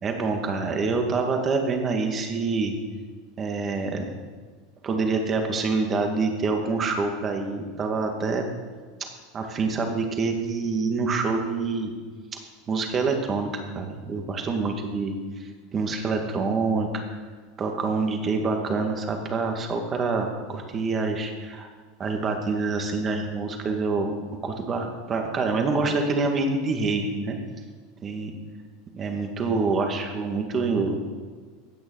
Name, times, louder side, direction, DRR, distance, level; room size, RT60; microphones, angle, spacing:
voice 1, 0.0-2.7 3.4-4.0 4.8-8.4 9.0-9.1 9.3-11.9 12.7-16.9 17.6-21.7 22.0-24.1 24.4-27.4 28.0-28.3 28.9-31.0, right 4 dB, 30° right, 4 dB, 2.1 m, -26 dB
16.5 x 6.4 x 6.5 m, 1.5 s
supercardioid pair, 120°, 0 cm